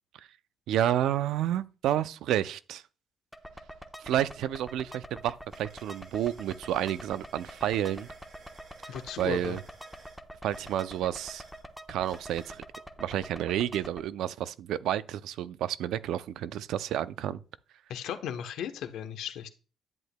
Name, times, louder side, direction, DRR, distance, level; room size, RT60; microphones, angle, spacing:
voice 1, 0.7-2.8 4.0-8.1 8.8-9.6 10.4-11.4 11.9-12.6 13.0-17.4, right 11 dB, 85° right, 0.4 m, -30 dB
sound 1, 3.3-14.0, equal, ahead, 1.0 m, -46 dB
sound 2, 4.1-4.2 4.5-12.6, right 4 dB, 60° right, 2.3 m, -57 dB
voice 2, 8.9-9.6 17.9-19.5, left 9 dB, 85° left, 0.9 m, -36 dB
10.5 x 8.0 x 2.2 m
cardioid pair, 90°, 0 cm